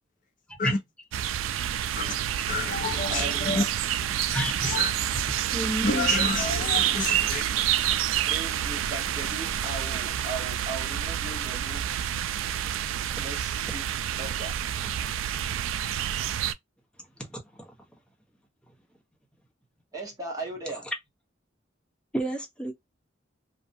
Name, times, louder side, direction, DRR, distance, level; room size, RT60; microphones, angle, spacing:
sound 1, 1.1-16.5, right 10 dB, 90° right, 0.3 m, -28 dB
voice 1, 2.5-3.7 4.6-4.9 5.8-7.5, left 3 dB, 40° left, 0.4 m, -29 dB
voice 2, 3.1-3.5 8.3-11.9 13.2-13.9 14.2-14.5 19.9-20.9, right 2 dB, 20° right, 1.0 m, -38 dB
voice 3, 4.3-4.7 5.5-6.1 13.7-13.8 14.8-14.9 17.3-17.6 22.1-22.7, right 1 dB, 5° left, 0.7 m, -30 dB
2.6 x 2.2 x 2.5 m
head